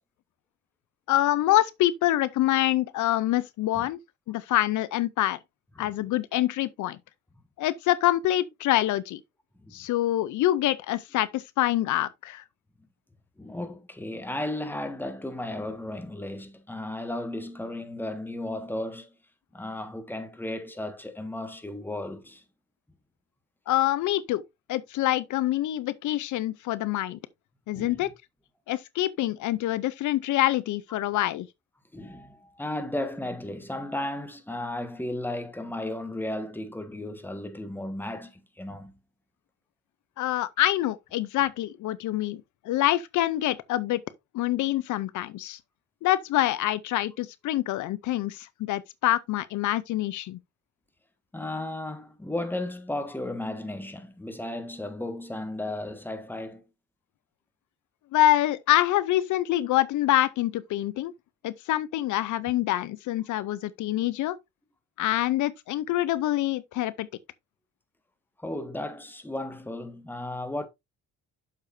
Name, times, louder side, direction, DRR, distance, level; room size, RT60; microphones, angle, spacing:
voice 1, 1.1-4.0 4.3-5.4 5.8-7.0 7.6-9.2 9.7-12.4 23.7-24.4 24.7-27.2 27.7-28.1 28.7-31.5 40.2-44.0 44.3-45.6 46.0-50.4 58.1-61.1 61.4-64.4 65.0-67.1, left 14 dB, 80° left, 0.6 m, -26 dB
voice 2, 13.4-19.1 19.5-22.4 27.7-28.0 31.9-38.9 51.3-56.6 62.5-62.6 68.4-70.7, left 1 dB, 5° left, 1.5 m, -34 dB
8.2 x 6.6 x 2.6 m
cardioid pair, 90°, 30 cm